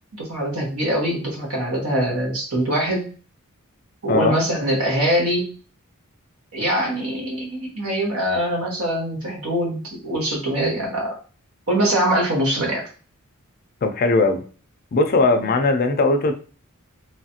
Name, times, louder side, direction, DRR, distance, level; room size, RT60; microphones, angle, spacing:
voice 1, 0.1-3.1 4.0-5.5 6.5-11.2 11.7-12.8 15.4-15.5, right 1 dB, 75° right, -1 dB, 1.1 m, -23 dB
voice 2, 4.1-4.4 13.8-14.4 14.9-16.3, left 3 dB, 40° left, 6 dB, 0.4 m, -19 dB
3.1 x 2.3 x 2.8 m, 0.38 s
head